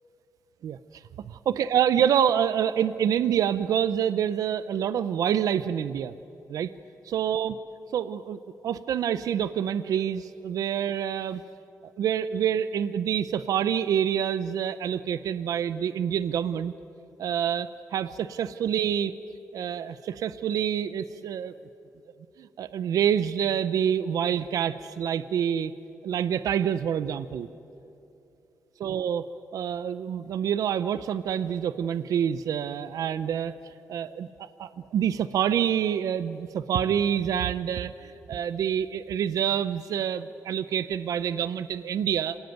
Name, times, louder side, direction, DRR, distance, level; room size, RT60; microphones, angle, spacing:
voice 1, 0.6-6.1 6.5-6.7 7.0-7.6 7.9-11.4 12.0-16.7 17.2-19.1 19.5-21.5 22.4-25.7 26.0-27.5 28.8-29.2 29.5-33.5 33.9-42.4, right 9 dB, 85° right, 14 dB, 0.6 m, -27 dB
26.5 x 18.5 x 9.2 m, 2.8 s
cardioid pair, 100°, 6 cm